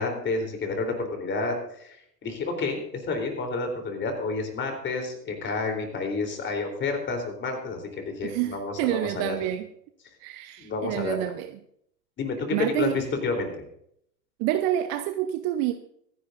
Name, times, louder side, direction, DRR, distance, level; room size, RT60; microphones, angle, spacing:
voice 1, 0.0-9.4 10.6-11.3 12.2-13.6, left 3 dB, 20° left, 3.6 m, -30 dB
voice 2, 8.2-9.7 10.2-11.5 12.5-13.1 14.4-15.7, right 13 dB, 30° right, 0.8 m, -28 dB
25.5 x 10.0 x 2.6 m
figure-of-eight pair, 90°, 50 cm